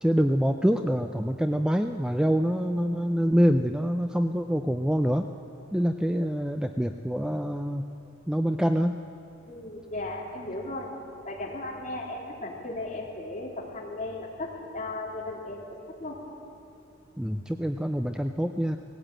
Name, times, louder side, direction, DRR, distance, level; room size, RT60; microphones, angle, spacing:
voice 1, 0.0-5.3 5.7-7.8 8.3-9.0 17.2-18.8, equal, 5° right, 6 dB, 0.4 m, -25 dB
voice 2, 9.5-10.9 11.2-16.2, left 2 dB, 35° left, -2 dB, 3.0 m, -36 dB
18.5 x 16.0 x 8.9 m, 2.8 s
head